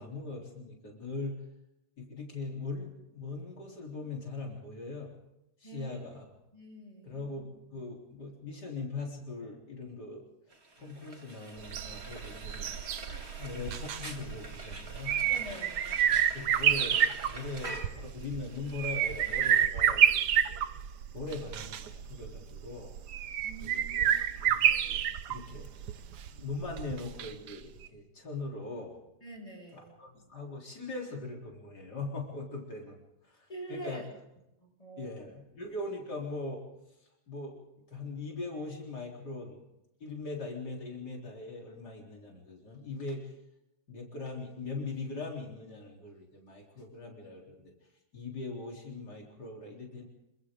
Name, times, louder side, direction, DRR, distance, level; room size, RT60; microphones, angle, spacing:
voice 1, 0.0-1.4 2.0-5.1 5.6-6.3 7.0-10.2 10.8-12.7 13.1-15.2 16.1-17.0 17.3-20.6 21.1-23.0 23.6-25.0 25.3-25.9 26.3-29.0 29.7-33.0 33.2-34.0 35.0-36.6 37.0-37.6 37.9-39.6 40.0-43.3 43.9-47.6 48.1-50.1, left 3 dB, 85° left, -1 dB, 4.4 m, -41 dB
voice 2, 5.6-6.0 6.5-7.2 13.1-13.2 15.3-16.0 23.4-24.5 29.2-29.9 33.5-34.0 34.6-35.1, right 1 dB, 20° left, 1 dB, 6.6 m, -45 dB
Frying (food), 10.5-19.7, right 2 dB, 40° right, 2.4 m, -46 dB
sound 1, 11.6-27.5 27.8-27.9, right 9 dB, 90° right, 1.5 m, -29 dB
27.0 x 25.0 x 3.8 m, 0.88 s
omnidirectional pair, 1.7 m